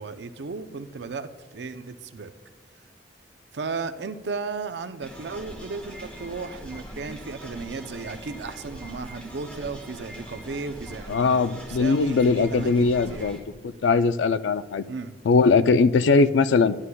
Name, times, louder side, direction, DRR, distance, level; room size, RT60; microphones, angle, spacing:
voice 1, 0.0-2.3 3.5-13.3 14.9-15.1, right 4 dB, 70° right, 10 dB, 0.5 m, -35 dB
sound 1, 5.0-13.4, equal, 5° left, 1.3 m, -41 dB
voice 2, 11.1-13.4 13.6-14.8 15.3-16.8, left 4 dB, 90° left, 13 dB, 0.4 m, -20 dB
11.5 x 11.0 x 2.2 m, 1.2 s
head